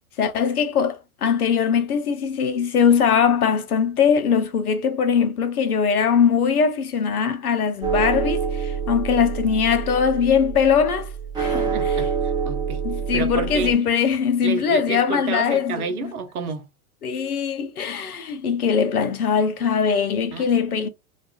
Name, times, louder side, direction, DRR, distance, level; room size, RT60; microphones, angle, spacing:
voice 1, 0.2-11.1 11.4-11.7 12.8-16.1 17.0-20.9, left 7 dB, 90° left, 0.6 m, -21 dB
sound 1, 7.8-13.7, right 6 dB, 10° right, 0.6 m, -26 dB
voice 2, 11.7-12.8 13.1-13.8 14.4-16.7 20.3-20.9, right 5 dB, 80° right, 0.7 m, -30 dB
2.4 x 2.3 x 2.3 m
hypercardioid pair, 100°, 43 cm